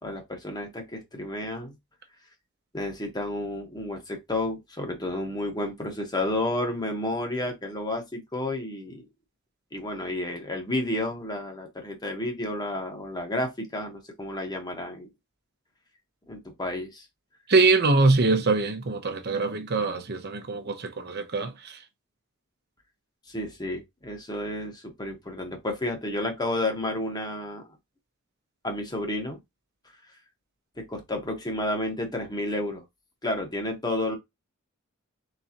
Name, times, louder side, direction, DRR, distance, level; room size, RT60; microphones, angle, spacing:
voice 1, 0.0-1.7 2.7-9.0 9.7-15.1 16.3-17.0 23.3-27.7 28.6-29.4 30.8-32.8 33.2-34.2, left 1 dB, 20° left, 1.2 m, -31 dB
voice 2, 17.5-21.8, right 3 dB, 50° right, 0.8 m, -23 dB
4.1 x 3.9 x 2.8 m
head